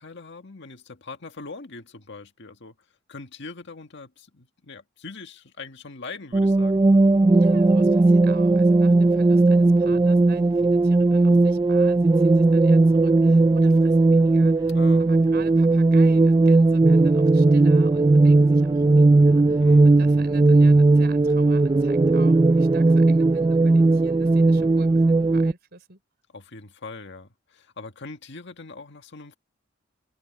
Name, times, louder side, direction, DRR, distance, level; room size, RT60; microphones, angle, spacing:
voice 1, 0.0-2.7 3.1-6.8 14.7-15.0 19.6-19.9 26.3-29.4, left 3 dB, 60° left, 1.8 m, -41 dB
sound 1, 6.3-25.5, right 2 dB, 20° right, 0.3 m, -17 dB
voice 2, 7.3-26.0, right 3 dB, 55° right, 4.1 m, -46 dB
head